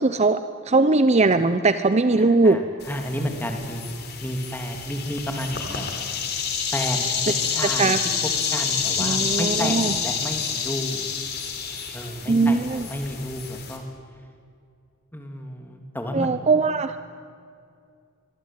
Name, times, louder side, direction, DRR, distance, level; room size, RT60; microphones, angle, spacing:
voice 1, 0.0-2.6 7.8-8.0 9.0-9.9 12.3-12.9 16.1-17.0, right 3 dB, 30° right, 11 dB, 0.7 m, -20 dB
voice 2, 2.2-2.6 2.9-3.8 4.2-5.8 6.7-7.1 7.4-8.0 8.2-11.0 11.9-13.8 15.1-16.3, equal, 10° left, 3 dB, 3.1 m, -31 dB
sound 1, 2.8-13.8, left 6 dB, 50° left, 3.8 m, -28 dB
25.0 x 23.0 x 9.3 m, 2.3 s
head